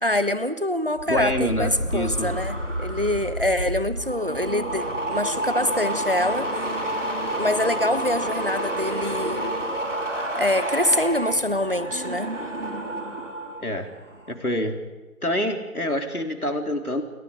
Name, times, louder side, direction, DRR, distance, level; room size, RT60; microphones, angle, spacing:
voice 1, 0.0-6.5 7.4-9.4 10.4-12.3, left 1 dB, 40° right, 12 dB, 1.1 m, -25 dB
sound 1, 0.9-13.6 13.9-14.3, right 1 dB, 55° right, 3.9 m, -29 dB
voice 2, 1.1-2.4 13.6-13.9 14.3-14.8 15.2-17.0, left 1 dB, 75° left, 4 dB, 3.7 m, -26 dB
30.0 x 23.0 x 5.1 m, 1.1 s
figure-of-eight pair, 180°, 45 cm